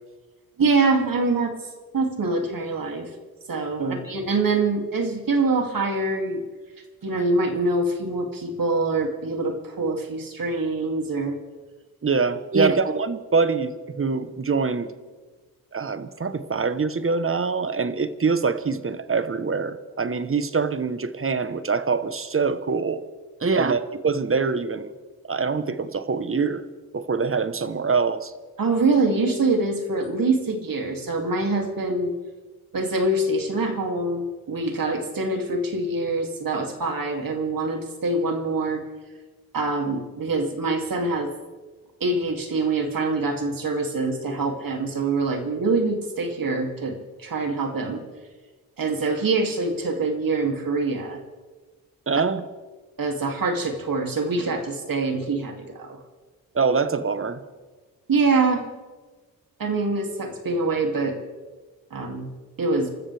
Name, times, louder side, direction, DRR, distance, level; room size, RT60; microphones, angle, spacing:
voice 1, 0.6-1.5 1.9-3.1 3.5-6.4 7.0-11.4 28.6-32.1 32.7-38.8 39.5-41.3 42.0-48.0 48.8-51.2 53.0-56.0 58.1-58.7 59.6-61.2 61.9-62.3 62.6-62.9, right 3 dB, 60° right, 3 dB, 2.8 m, -24 dB
voice 2, 12.0-14.9 15.7-23.0 23.4-24.9 25.3-26.6 26.9-28.3 52.1-52.4 56.5-57.4, right 4 dB, 35° right, 12 dB, 1.1 m, -24 dB
28.0 x 13.5 x 3.5 m, 1.3 s
cardioid pair, 75°, 37 cm